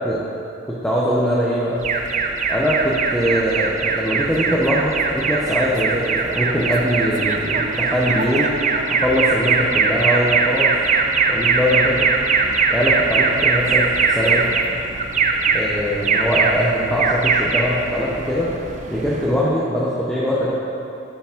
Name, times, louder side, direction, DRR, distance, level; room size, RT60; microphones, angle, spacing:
voice 1, 0.7-1.9 2.5-8.5 8.9-10.7 11.3-12.1 12.7-13.9 14.1-14.5 15.5-18.5 18.9-20.5, equal, 5° left, -7 dB, 0.6 m, -21 dB
Alarm, 1.8-19.4, right 4 dB, 35° right, 0.4 m, -21 dB
10.0 x 5.2 x 3.7 m, 2.7 s
head